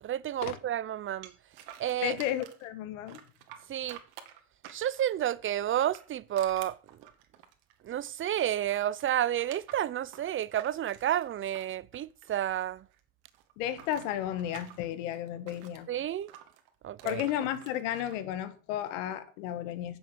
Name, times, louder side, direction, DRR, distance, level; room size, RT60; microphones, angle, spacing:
voice 1, 0.0-1.3 1.8-2.2 3.7-4.0 4.7-6.8 7.8-12.9 15.9-16.3 16.8-17.2, right 11 dB, 35° right, 0.7 m, -30 dB
sound 1, 1.2-2.7 3.1-5.2 5.7-8.2 8.5-12.6 12.9-15.8 16.3-18.2, right 11 dB, 70° right, 2.1 m, -50 dB
voice 2, 2.0-3.2 13.6-15.9 17.0-20.0, left 11 dB, 80° left, 1.6 m, -33 dB
9.4 x 7.2 x 6.7 m
supercardioid pair, 95°, 38 cm